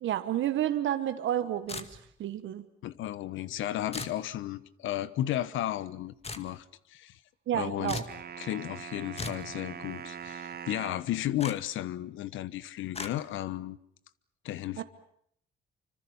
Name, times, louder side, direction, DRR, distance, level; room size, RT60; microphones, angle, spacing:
voice 1, 0.0-2.7 7.5-8.0 14.8-14.9, right 11 dB, 75° right, 10 dB, 1.3 m, -30 dB
sound 1, 1.7-2.2 3.9-4.2 6.2-6.5 7.9-8.2 9.2-9.5 11.4-11.6 12.9-13.1, left 3 dB, 30° left, 2.1 m, -37 dB
voice 2, 2.8-7.2 7.5-8.0 8.4-13.8 14.4-14.8, left 13 dB, 85° left, 17 dB, 1.1 m, -34 dB
sound 2, 8.1-11.1, right 8 dB, 50° right, 1.6 m, -42 dB
26.0 x 25.5 x 7.1 m, 0.66 s
cardioid pair, 90°, 20 cm